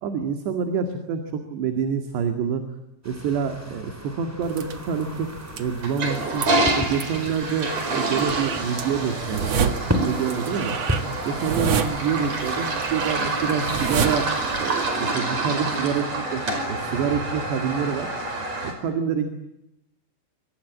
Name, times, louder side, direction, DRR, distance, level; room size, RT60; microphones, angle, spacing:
voice 1, 0.0-2.6 3.1-5.3 5.6-6.5 6.8-10.8 11.3-18.1 18.6-19.3, right 6 dB, 60° right, 6 dB, 4.0 m, -27 dB
sound 1, 3.0-13.5, equal, 5° right, 2.9 m, -34 dB
sound 2, 4.4-15.1, right 6 dB, 85° right, 1.4 m, -30 dB
Toilet flush, 5.8-18.7, right 2 dB, 35° right, 6.0 m, -27 dB
26.5 x 25.0 x 8.7 m, 0.87 s
omnidirectional pair, 5.8 m